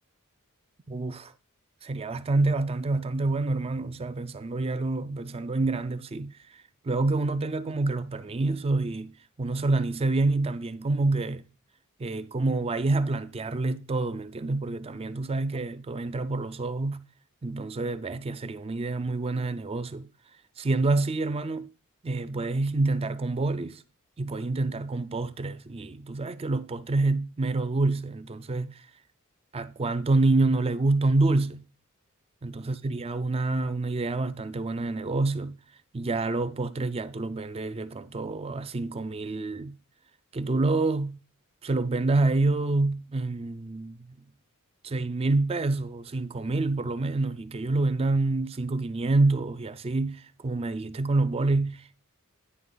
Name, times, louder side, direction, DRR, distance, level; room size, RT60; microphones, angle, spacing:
voice 1, 0.9-1.3 1.8-9.1 9.4-11.4 12.0-17.0 17.4-20.1 20.6-21.7 22.0-23.8 24.2-28.8 29.5-31.6 32.4-35.6 35.9-39.8 40.3-41.2 41.6-44.1 44.8-52.0, right 2 dB, 25° right, 0.4 m, -27 dB
9.7 x 4.6 x 3.9 m
head